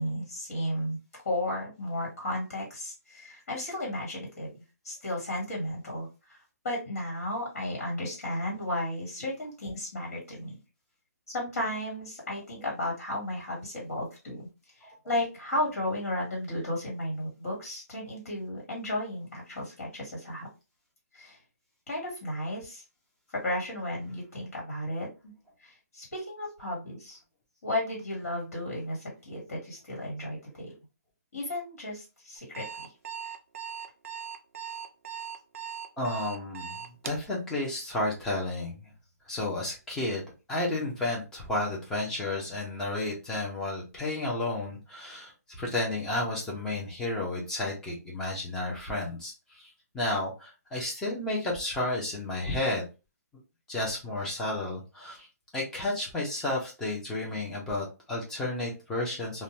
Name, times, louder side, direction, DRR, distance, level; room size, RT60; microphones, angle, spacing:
voice 1, 0.0-10.6 11.3-14.5 14.7-20.5 21.1-21.4 21.9-22.8 23.3-25.3 25.6-27.2 27.6-30.7 31.3-32.9, left 1 dB, 55° left, -2 dB, 1.6 m, -34 dB
Alarm, 32.4-37.3, right 8 dB, 55° right, 0.4 m, -39 dB
voice 2, 36.0-38.9 39.3-40.2 40.5-49.6 49.9-52.8 53.7-55.3 55.5-59.4, left 2 dB, 5° left, -3 dB, 0.6 m, -32 dB
2.6 x 2.2 x 3.1 m, 0.29 s
hypercardioid pair, 165°, 9 cm